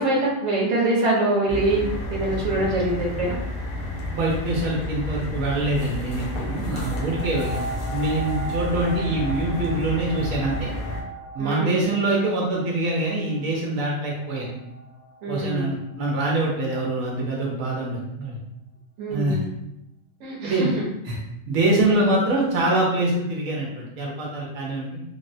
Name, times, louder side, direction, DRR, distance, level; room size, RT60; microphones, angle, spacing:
voice 1, 0.0-1.8 2.1-3.4 11.4-11.8 15.2-15.8 19.0-19.5 20.2-20.8, right 2 dB, 60° right, -4 dB, 1.1 m, -24 dB
sound 1, 1.5-11.0, left 1 dB, 55° left, 0.7 m, -31 dB
voice 2, 4.1-10.7 11.3-14.6 15.3-18.4 19.1-19.4 20.4-20.8 21.0-21.2 21.5-25.0, right 2 dB, 85° right, -3 dB, 1.1 m, -24 dB
sound 2, 6.9-16.2 16.8-16.9, right 1 dB, 85° left, 1.0 m, -38 dB
3.4 x 2.1 x 2.6 m, 0.85 s
omnidirectional pair, 1.4 m